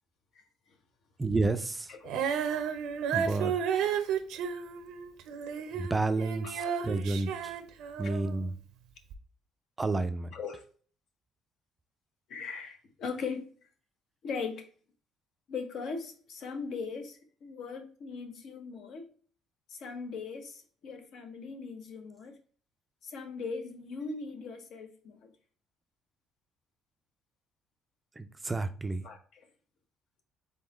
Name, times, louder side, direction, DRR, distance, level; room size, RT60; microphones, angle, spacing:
voice 1, 1.2-1.9 3.1-3.9 5.7-7.6 8.0-8.5 9.8-10.3 28.2-29.0, right 3 dB, 20° right, 9 dB, 0.3 m, -31 dB
voice 2, 1.9-2.4 6.6-6.8 10.3-10.6 12.3-13.7 14.2-14.7 15.5-19.1 19.7-22.4 23.0-25.3 29.0-29.5, left 5 dB, 65° left, 5 dB, 0.9 m, -39 dB
Female singing, 2.0-8.4 9.1-9.2, right 8 dB, 85° right, 0.5 m, -32 dB
3.8 x 3.8 x 3.0 m, 0.43 s
cardioid pair, 125°, 0 cm